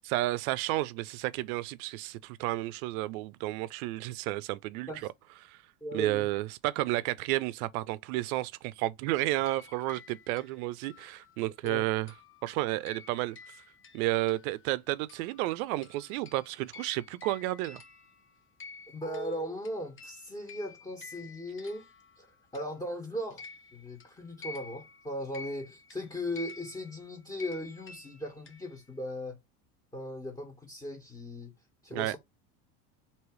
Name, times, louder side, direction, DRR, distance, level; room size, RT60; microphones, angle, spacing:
voice 1, 0.1-4.9 5.4-5.6 5.9-12.1 12.4-13.4 13.9-17.8 31.9-32.2, right 17 dB, 80° right, 0.6 m, -31 dB
voice 2, 5.8-6.3 11.6-11.8 18.9-21.9 22.2-22.3 22.5-23.4 23.7-29.4 29.9-31.5 31.8-32.2, equal, 10° left, 1.4 m, -38 dB
sound 1, 9.3-14.8 15.1-22.9 23.3-29.0, left 4 dB, 30° left, 0.8 m, -51 dB
3.1 x 3.0 x 4.6 m
supercardioid pair, 105°, 42 cm